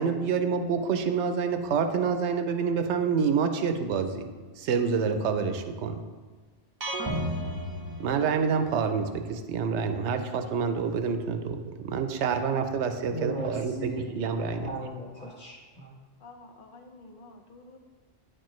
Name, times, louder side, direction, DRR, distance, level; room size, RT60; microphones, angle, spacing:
voice 1, 0.0-4.3 4.6-6.0 8.0-14.9, right 6 dB, 75° right, 7 dB, 0.9 m, -27 dB
sound 1, 6.8-8.8, equal, 25° right, 0.5 m, -33 dB
voice 2, 13.1-14.2 14.6-15.9, right 1 dB, 5° left, -7 dB, 0.9 m, -36 dB
voice 3, 16.2-17.8, left 3 dB, 55° left, 4 dB, 0.7 m, -50 dB
9.6 x 4.4 x 3.1 m, 1.4 s
omnidirectional pair, 1.2 m